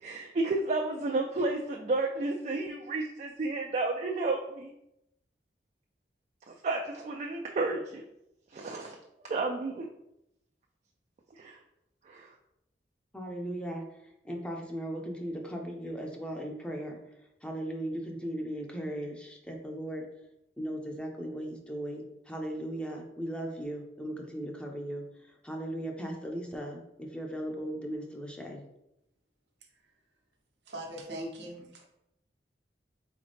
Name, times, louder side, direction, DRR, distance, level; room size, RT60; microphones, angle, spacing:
voice 1, 0.0-4.7 6.5-8.0 8.5-9.0 9.3-9.9 11.4-11.6 12.1-12.3, right 3 dB, 40° right, 2 dB, 0.4 m, -32 dB
voice 2, 13.1-17.1 17.4-20.1 20.6-28.6, right 1 dB, 5° left, 1 dB, 0.6 m, -37 dB
voice 3, 30.7-31.8, right 1 dB, 80° right, 1 dB, 0.9 m, -40 dB
3.9 x 3.8 x 3.4 m, 0.83 s
head